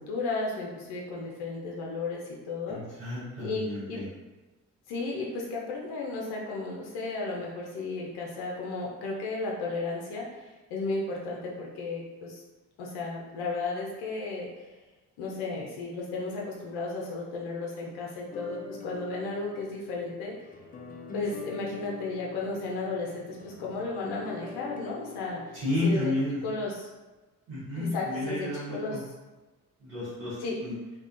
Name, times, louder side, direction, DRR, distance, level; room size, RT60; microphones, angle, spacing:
voice 1, 0.0-2.8 3.4-4.0 4.9-12.4 12.8-14.7 15.2-20.4 21.1-25.6 25.8-26.1 26.4-26.8 27.7-29.0 30.4-30.6, left 3 dB, 80° left, -2 dB, 0.6 m, -34 dB
voice 2, 2.7-4.1 25.5-26.4 27.5-29.0 29.8-30.8, left 1 dB, 90° right, -12 dB, 0.9 m, -31 dB
sound 1, 18.3-26.0, left 3 dB, 25° left, 0.4 m, -44 dB
2.4 x 2.1 x 2.4 m, 1.2 s
supercardioid pair, 50°, 38 cm